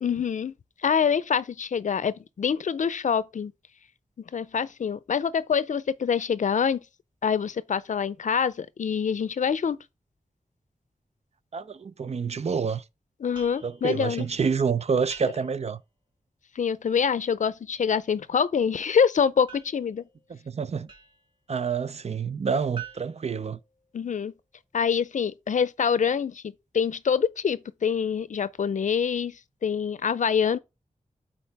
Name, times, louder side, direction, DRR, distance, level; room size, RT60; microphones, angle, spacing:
voice 1, 0.0-0.5 0.8-3.5 4.3-6.8 7.2-9.8 13.2-14.3 16.6-20.0 23.9-24.3 24.7-26.4 26.7-30.6, left 7 dB, 70° left, 0.5 m, -25 dB
voice 2, 11.5-12.8 13.6-15.8 20.3-20.9 21.5-23.6, right 6 dB, 55° right, 0.5 m, -28 dB
sound 1, 13.3-15.7 19.5-21.4 22.8-24.2, right 6 dB, 35° right, 2.6 m, -47 dB
8.6 x 4.1 x 3.3 m
wide cardioid pair, 90°, 13 cm